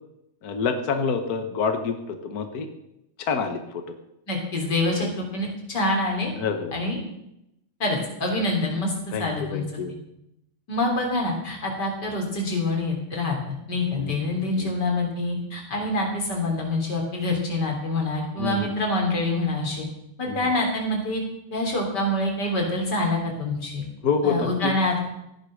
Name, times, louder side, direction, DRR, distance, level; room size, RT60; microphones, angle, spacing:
voice 1, 0.4-2.7 3.2-3.8 5.0-5.1 6.4-6.7 9.1-9.9 13.9-14.2 14.5-14.7 18.4-18.6 20.3-20.4 24.0-24.7, left 5 dB, 80° left, 7 dB, 0.8 m, -27 dB
voice 2, 4.3-6.3 6.7-7.0 7.8-9.6 10.7-19.9 20.2-21.2 21.5-23.8 24.2-25.1, left 2 dB, 35° left, 0 dB, 3.7 m, -26 dB
15.0 x 10.0 x 6.4 m, 0.84 s
omnidirectional pair, 3.6 m